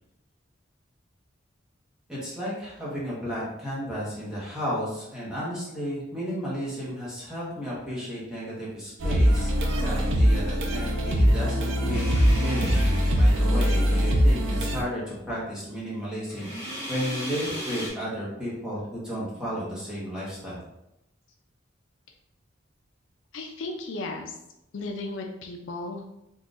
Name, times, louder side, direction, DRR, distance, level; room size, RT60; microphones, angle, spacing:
voice 1, 2.1-12.9 13.2-20.6, equal, 5° right, -8 dB, 1.2 m, -33 dB
sound 1, 9.0-14.8, equal, 65° right, 0.5 m, -22 dB
sound 2, 11.9-13.9 16.3-17.9, equal, 15° left, 1.3 m, -36 dB
voice 2, 23.3-24.4 24.7-26.1, left 2 dB, 70° left, 2 dB, 0.4 m, -35 dB
3.9 x 2.7 x 2.5 m, 0.84 s
head